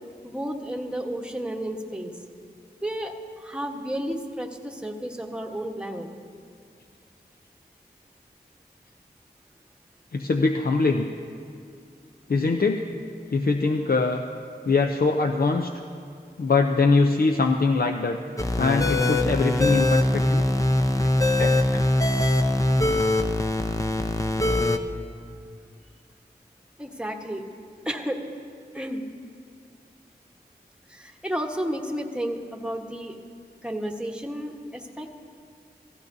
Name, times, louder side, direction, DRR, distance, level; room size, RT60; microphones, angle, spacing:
voice 1, 0.2-2.1 2.8-3.1 3.4-6.1 26.8-27.4 27.8-28.2 28.7-29.0 30.9-33.2 33.6-35.1, equal, 5° right, 3 dB, 1.1 m, -32 dB
voice 2, 10.1-11.1 12.3-12.8 13.3-14.2 14.6-15.7 16.4-18.2 18.6-20.4 20.9-21.1 21.4-21.8, left 3 dB, 60° left, 3 dB, 0.5 m, -22 dB
sound 1, 18.4-24.8, left 1 dB, 20° left, 0.7 m, -22 dB
16.0 x 14.5 x 2.7 m, 2.3 s
wide cardioid pair, 45°, 17 cm